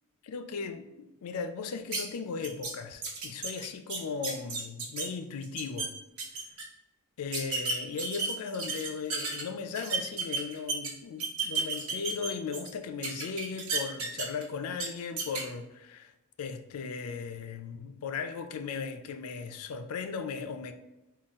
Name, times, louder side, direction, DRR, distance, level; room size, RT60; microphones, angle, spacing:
voice 1, 0.2-5.9 7.2-16.1 16.4-20.7, left 5 dB, 75° left, 0.4 m, -37 dB
sound 1, 1.9-2.0 2.4-2.7 3.0-5.1 5.4-5.9 6.2-6.6 7.3-9.4 9.7-10.9 11.2-12.7 13.0-14.4 14.8-14.9 15.2-15.4, right 4 dB, 70° right, 1.0 m, -32 dB
3.9 x 2.3 x 3.5 m
head